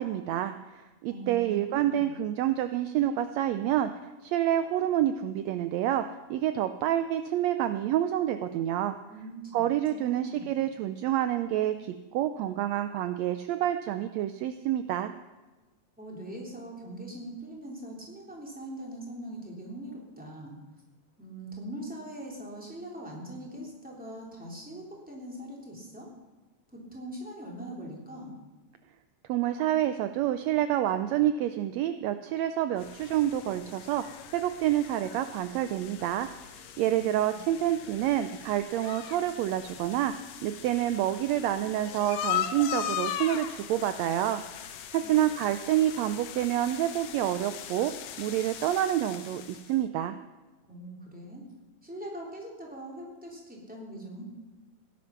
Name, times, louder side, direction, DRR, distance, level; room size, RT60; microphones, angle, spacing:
voice 1, 0.0-3.9 4.2-9.0 9.5-15.1 29.3-40.1 40.4-50.2, right 12 dB, 80° right, 10 dB, 1.5 m, -28 dB
voice 2, 1.1-2.1 9.1-10.5 16.0-20.6 21.2-26.1 26.7-28.3 45.0-45.1 50.7-51.4 51.8-54.2, right 1 dB, 5° right, -2 dB, 3.0 m, -42 dB
sound 1, 32.8-49.8, left 10 dB, 70° left, 2.0 m, -39 dB
17.0 x 10.5 x 5.8 m, 1.2 s
omnidirectional pair, 3.6 m